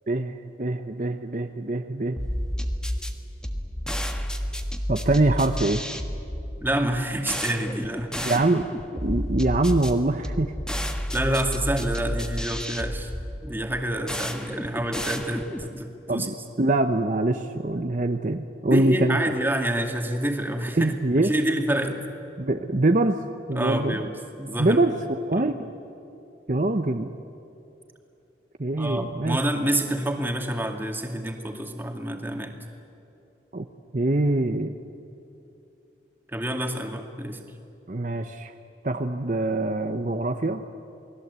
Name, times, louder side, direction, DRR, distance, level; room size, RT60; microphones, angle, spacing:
voice 1, 0.1-2.2 4.9-5.8 8.2-8.7 9.0-10.5 16.1-19.3 20.8-21.3 22.4-23.2 23.5-23.9 24.6-25.5 26.5-27.2 28.6-29.4 33.5-33.7 33.9-34.7 37.9-38.5 38.8-40.6, right 2 dB, 45° right, 6 dB, 0.9 m, -24 dB
sound 1, 2.2-15.8, equal, 5° left, 1.4 m, -31 dB
voice 2, 6.6-8.4 11.1-13.1 13.4-16.3 18.6-20.9 21.2-22.0 23.5-24.9 25.3-25.5 28.8-32.5 36.3-37.4, right 1 dB, 10° right, 4 dB, 2.2 m, -28 dB
29.0 x 20.5 x 8.2 m, 2.9 s
head